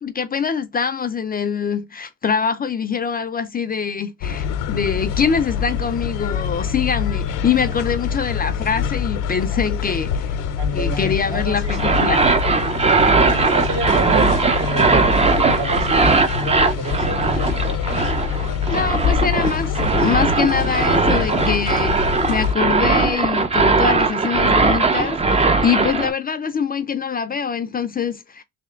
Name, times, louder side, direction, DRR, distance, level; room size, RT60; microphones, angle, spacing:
voice 1, 0.0-10.4 10.7-12.3 18.7-28.4, left 6 dB, 30° left, 0.5 m, -24 dB
sound 1, 4.2-22.5, left 7 dB, 80° left, 0.8 m, -25 dB
voice 2, 10.6-11.8 13.2-17.7, right 2 dB, 60° right, 2.1 m, -30 dB
sound 2, 11.7-26.1, right 3 dB, 20° right, 0.6 m, -19 dB
3.3 x 2.8 x 3.7 m
supercardioid pair, 80°, 31 cm